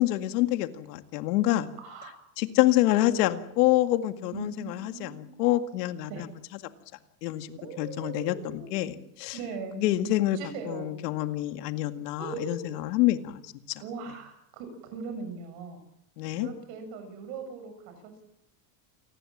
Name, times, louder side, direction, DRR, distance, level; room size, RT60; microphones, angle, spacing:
voice 1, 0.0-1.7 2.4-6.3 7.2-9.4 9.8-10.4 10.7-13.8 16.2-16.5, left 15 dB, 80° left, 8 dB, 2.2 m, -27 dB
voice 2, 1.8-2.2 4.3-5.6 6.1-6.3 7.5-9.0 9.3-9.8 10.1-10.9 12.2-12.8 13.8-15.8 16.4-18.2, right 5 dB, 55° right, 8 dB, 7.2 m, -40 dB
28.5 x 19.5 x 7.5 m, 0.77 s
cardioid pair, 170°, 48 cm